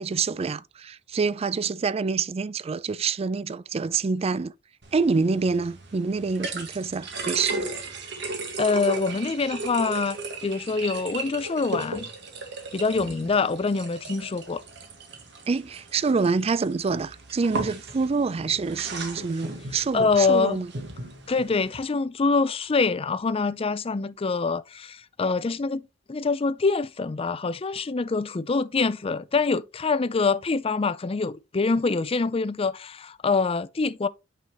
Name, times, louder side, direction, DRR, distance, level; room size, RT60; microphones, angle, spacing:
voice 1, 0.0-4.5 4.9-7.7 15.5-20.7, right 4 dB, 30° right, 0.4 m, -26 dB
sound 1, 4.8-21.8, right 3 dB, 65° right, 1.8 m, -36 dB
voice 2, 8.6-12.1 12.7-14.6 19.9-20.6 21.3-25.8 26.1-34.1, left 4 dB, 30° left, 0.5 m, -25 dB
9.0 x 5.5 x 3.1 m
head